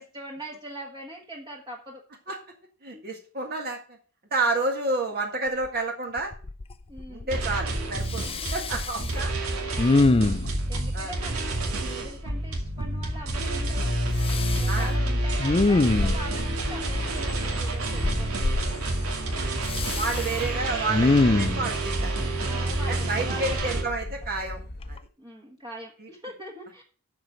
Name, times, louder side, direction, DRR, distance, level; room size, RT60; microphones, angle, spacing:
voice 1, 0.0-2.0 2.9-3.0 6.9-7.3 8.9-9.2 9.7-10.3 10.7-13.9 14.6-18.6 20.2-20.5 22.5-23.6 25.2-26.8, equal, 20° right, -1 dB, 1.5 m, -42 dB
voice 2, 2.8-3.8 4.3-6.3 7.1-8.2 8.5-9.3 10.0-10.1 10.9-11.1 14.7-14.9 19.4-19.5 19.9-22.1 22.9-24.6 24.9-25.0, right 3 dB, 45° right, 1 dB, 1.8 m, -30 dB
Respiratory sounds, 5.6-5.7 6.2-6.7 7.0-7.7 8.1-9.1 9.8-10.6 14.2-14.8 15.4-16.5 18.0-18.6 19.7-20.4 20.9-21.7 23.5-24.4 24.8-25.0, left 2 dB, 25° left, 0.5 m, -24 dB
sound 1, 7.3-23.8, right 1 dB, 80° right, 2.3 m, -29 dB
sound 2, 7.8-25.0, left 1 dB, 50° left, 1.0 m, -40 dB
12.0 x 4.7 x 6.5 m, 0.39 s
head